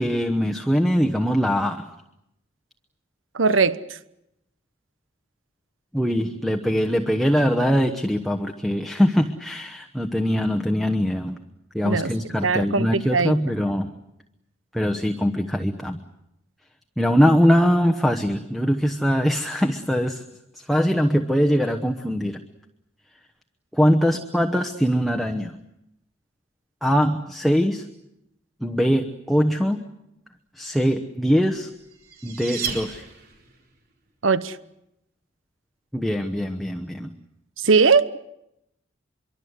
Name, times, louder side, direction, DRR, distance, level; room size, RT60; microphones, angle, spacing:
voice 1, 0.0-1.9 5.9-11.4 11.7-13.9 14.7-16.0 17.0-20.2 20.6-22.4 23.7-25.6 26.8-27.9 28.6-29.8 30.6-31.7 32.2-33.0 35.9-37.1, equal, ahead, 1.0 m, -22 dB
voice 2, 3.3-3.8 11.8-12.1 12.4-13.6 34.2-34.6 37.6-38.2, right 4 dB, 85° right, 1.0 m, -20 dB
sound 1, 31.8-33.6, right 6 dB, 50° right, 4.2 m, -33 dB
24.5 x 23.5 x 8.1 m
head